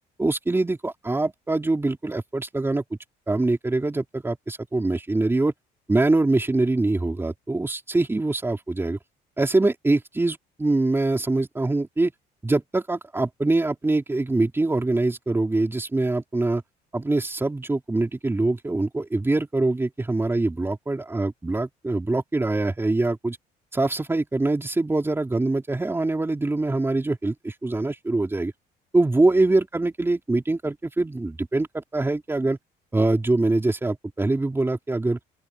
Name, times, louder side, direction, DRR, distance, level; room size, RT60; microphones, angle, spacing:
voice 1, 0.2-2.8 3.3-5.5 5.9-9.0 9.4-12.1 12.4-16.6 16.9-23.4 23.7-28.5 28.9-32.6 32.9-35.2, right 2 dB, 15° right, 4.1 m, -24 dB
open air
cardioid pair, 110°, 17 cm